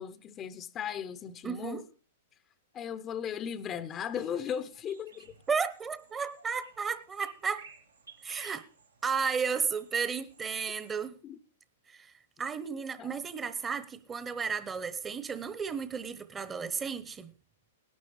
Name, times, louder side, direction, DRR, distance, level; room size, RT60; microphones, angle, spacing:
voice 1, 0.0-1.8 2.7-5.3 11.2-11.4 13.0-13.2, left 8 dB, 25° left, 0.8 m, -37 dB
voice 2, 1.4-1.8 5.5-7.7 8.2-8.7 9.0-11.2 11.9-12.1 12.4-17.3, right 5 dB, 20° right, 1.1 m, -33 dB
sound 1, 3.9-11.0, right 5 dB, 85° right, 2.5 m, -56 dB
18.5 x 12.0 x 3.2 m
hypercardioid pair, 110°, 0 cm